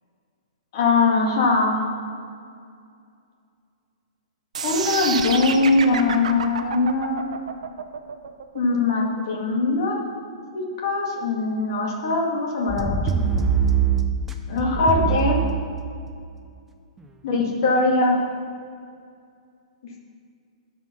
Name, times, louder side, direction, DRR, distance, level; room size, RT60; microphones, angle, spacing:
voice 1, 0.7-1.7 4.6-7.2 8.5-10.0 10.5-13.0 14.5-15.4 17.2-18.2 19.8-20.0, left 3 dB, 35° left, -2 dB, 2.0 m, -21 dB
sound 1, 4.5-10.6, right 6 dB, 65° right, 0.8 m, -30 dB
sound 2, 12.7-16.1 17.0-17.1, right 6 dB, 5° right, 0.4 m, -23 dB
11.5 x 5.6 x 6.2 m, 2.3 s
hypercardioid pair, 180°, 4 cm